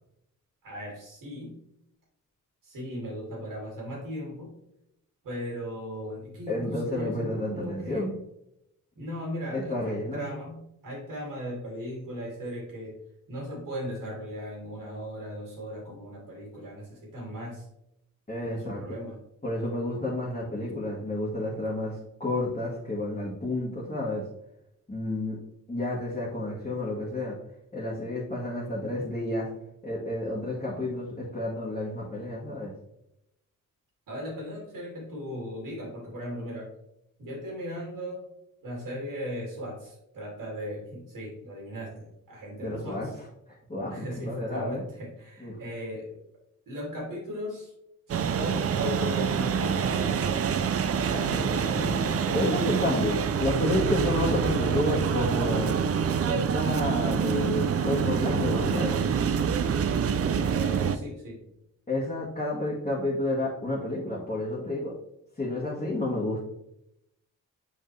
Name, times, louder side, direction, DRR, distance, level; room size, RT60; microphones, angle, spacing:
voice 1, 0.6-1.5 2.6-4.5 5.2-8.1 9.0-13.0 13.3-17.7 18.4-19.2 34.1-36.7 37.2-38.2 38.6-43.1 43.9-46.2 46.7-47.7 48.1-50.3 50.9-52.5 60.3-61.4, equal, 85° right, -3 dB, 2.4 m, -37 dB
voice 2, 6.5-8.1 9.5-10.3 18.3-18.8 19.4-24.2 24.9-25.4 25.7-27.4 27.7-29.5 29.8-32.7 42.6-43.3 43.7-44.8 45.4-45.6 51.7-55.7 56.3-59.0 61.9-64.9 65.4-66.4, left 1 dB, 20° left, -6 dB, 1.6 m, -30 dB
sound 1, 48.1-61.0, right 7 dB, 45° right, 0.5 m, -26 dB
7.7 x 4.7 x 3.2 m, 0.84 s
cardioid pair, 95°, 32 cm